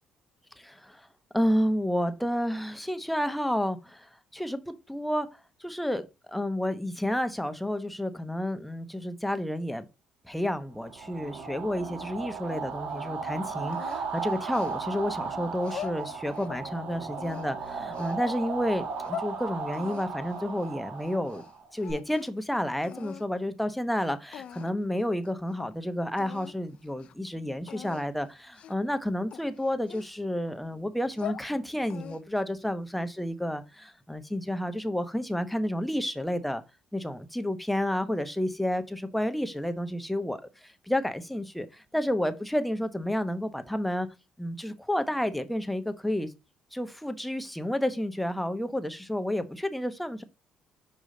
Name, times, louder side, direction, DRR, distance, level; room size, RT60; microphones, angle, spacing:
voice 1, 0.6-1.1 1.3-5.3 5.6-9.9 10.2-21.4 21.7-36.6 36.9-44.1 44.4-46.3 46.7-50.2, left 1 dB, 5° left, 0.9 m, -30 dB
sound 1, 10.8-21.9, right 5 dB, 70° right, 1.7 m, -36 dB
sound 2, 13.7-15.1 15.6-16.7 17.1-18.2 18.8-19.3 19.7-21.5 21.8-22.4 22.8-23.3 23.9-24.0 24.3-24.9 25.2-25.3 25.6-25.7 26.2-26.6 26.9-27.1 27.7-28.1 28.5-28.9 29.3-30.5 31.0-31.5 31.9-32.4, left 10 dB, 60° left, 0.4 m, -42 dB
5.4 x 4.9 x 3.8 m
cardioid pair, 85°, 2 cm